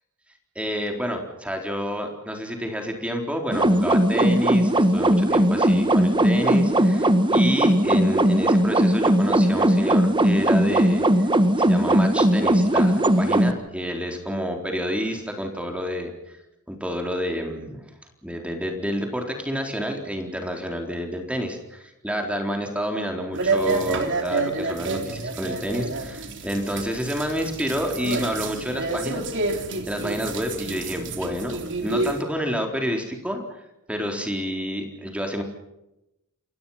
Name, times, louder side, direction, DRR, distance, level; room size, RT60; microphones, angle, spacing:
voice 1, 0.6-11.3 11.6-16.4 16.7-17.9 18.2-33.6 33.9-35.4, equal, 5° right, 3 dB, 4.1 m, -29 dB
sound 1, 3.5-13.5, right 1 dB, 20° right, 1.6 m, -19 dB
sound 2, 23.3-32.2, right 3 dB, 55° right, 3.7 m, -29 dB
29.5 x 23.5 x 5.8 m, 0.90 s
head